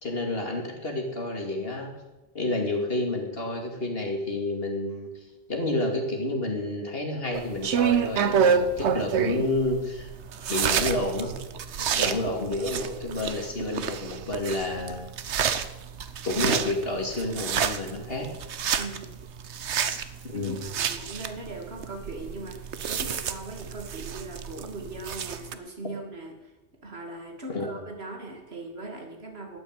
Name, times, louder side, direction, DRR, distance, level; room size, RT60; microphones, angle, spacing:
voice 1, 0.0-1.9 2.3-5.1 5.5-10.1 10.5-11.3 12.0-15.1 16.2-18.3 20.2-20.6 27.5-27.7, left 2 dB, 60° left, 2 dB, 2.8 m, -29 dB
sound 1, 7.3-25.5, right 7 dB, 85° right, 1.2 m, -29 dB
voice 2, 11.7-12.2 18.8-19.2 20.3-26.5 26.8-29.6, right 2 dB, 65° right, 2 dB, 2.7 m, -40 dB
12.5 x 9.3 x 8.9 m, 1.1 s
omnidirectional pair, 1.1 m